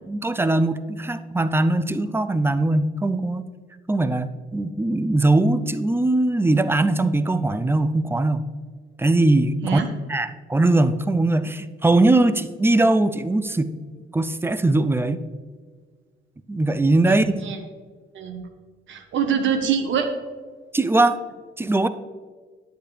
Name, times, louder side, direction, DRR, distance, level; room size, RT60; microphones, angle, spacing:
voice 1, 0.1-3.4 3.9-8.4 9.0-9.8 10.1-13.7 14.1-15.3 16.5-17.3 20.7-21.2 21.6-21.9, right 2 dB, 10° right, 11 dB, 0.5 m, -20 dB
voice 2, 17.1-17.6 18.1-18.5 18.9-20.1, right 7 dB, 70° right, 6 dB, 1.3 m, -24 dB
10.0 x 8.4 x 3.3 m, 1.5 s
cardioid pair, 90°, 20 cm